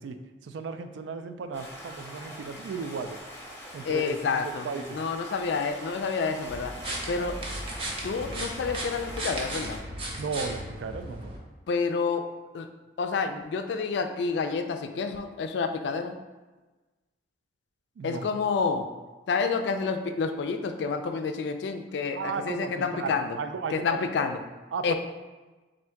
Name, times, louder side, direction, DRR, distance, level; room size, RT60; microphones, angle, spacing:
voice 1, 0.0-3.2 3.7-4.4 4.6-5.0 10.2-11.3 18.0-18.3 22.1-24.3 24.7-24.9, right 5 dB, 85° right, 9 dB, 0.3 m, -35 dB
Stream, 1.5-9.8, equal, 15° left, 0.6 m, -44 dB
voice 2, 3.8-6.8 7.1-7.5 8.0-9.8 11.7-12.3 12.5-12.7 13.0-16.2 18.0-18.9 19.3-23.4 23.7-24.4 24.8-24.9, left 5 dB, 75° left, 7 dB, 0.3 m, -29 dB
sound 1, 6.5-11.4, right 1 dB, 30° right, 0.6 m, -36 dB
3.5 x 2.6 x 4.4 m, 1.2 s
head